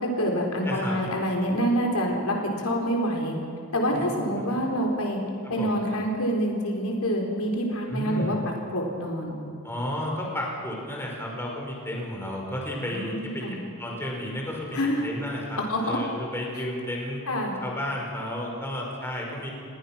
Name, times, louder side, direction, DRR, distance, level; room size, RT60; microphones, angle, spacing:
voice 1, 0.0-3.4 3.7-5.2 5.5-9.4 12.9-13.6 14.7-15.0 15.6-16.0 17.3-17.5, equal, 80° left, 0 dB, 4.3 m, -27 dB
voice 2, 0.6-1.0 3.9-4.0 4.5-4.6 5.4-5.8 7.9-8.4 9.6-17.3 17.6-19.5, left 1 dB, 10° left, -2 dB, 5.1 m, -32 dB
29.0 x 20.5 x 6.0 m, 2.4 s
head